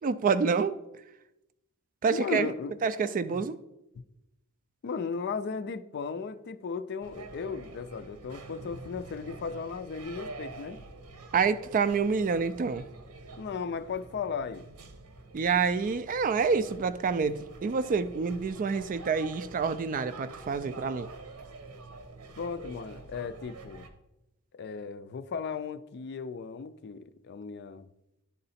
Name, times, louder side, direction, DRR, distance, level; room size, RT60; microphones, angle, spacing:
voice 1, 0.0-0.8 2.0-2.5 2.8-3.6 11.3-12.9 15.3-21.1, right 5 dB, 35° right, 0.3 m, -27 dB
voice 2, 2.1-2.7 3.3-3.4 4.0-4.1 4.8-10.8 13.4-14.7 22.4-23.9 24.5-27.9, left 5 dB, 50° left, 0.4 m, -36 dB
sound 1, 7.0-23.9, right 3 dB, 85° right, 0.9 m, -46 dB
10.5 x 3.9 x 4.2 m
head